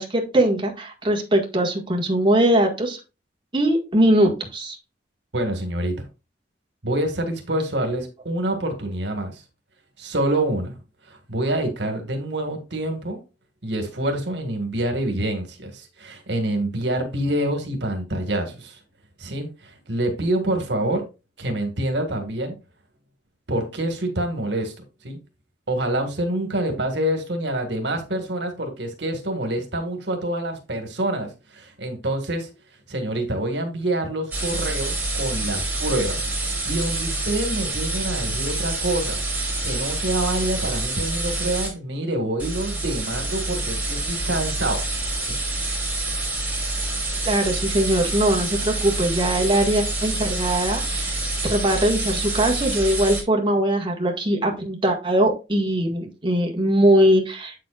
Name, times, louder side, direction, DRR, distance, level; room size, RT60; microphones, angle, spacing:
voice 1, 0.0-3.0 3.5-4.8 47.2-57.5, right 1 dB, 30° right, 1.8 m, -21 dB
voice 2, 5.3-6.1 6.8-9.4 10.0-10.8 11.1-13.2 13.6-18.8 19.2-21.0 21.4-22.5 23.5-24.7 25.0-25.2 25.7-32.5 32.9-44.8, right 1 dB, 75° right, 1.8 m, -26 dB
sound 1, 34.3-41.7 42.4-53.2, right 2 dB, 10° right, 4.2 m, -27 dB
8.1 x 7.6 x 2.4 m
head